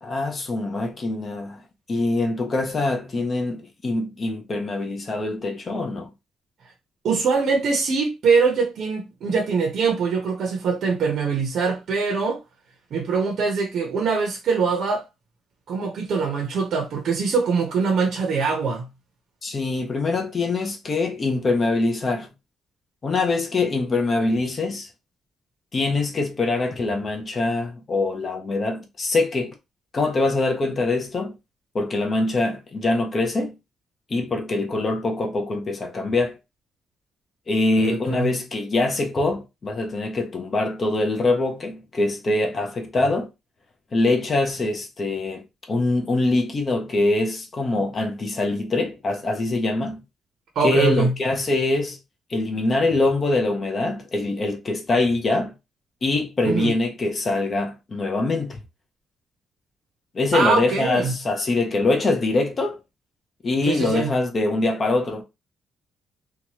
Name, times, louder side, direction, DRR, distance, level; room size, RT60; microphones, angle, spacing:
voice 1, 0.0-1.6 1.9-6.1 19.4-22.3 23.0-24.9 25.7-29.5 29.9-31.3 31.7-33.6 34.1-36.3 37.5-43.3 43.9-50.0 50.6-52.0 52.3-55.5 56.0-58.6 60.1-62.8 63.4-65.2, left 2 dB, 30° left, 0.6 m, -23 dB
voice 2, 7.0-12.4 12.9-15.0 15.7-18.9 37.8-38.3 50.5-51.1 56.4-56.7 60.3-61.1 63.7-64.1, right 5 dB, 55° right, 0.7 m, -23 dB
2.8 x 2.3 x 2.9 m
cardioid pair, 165°, 0 cm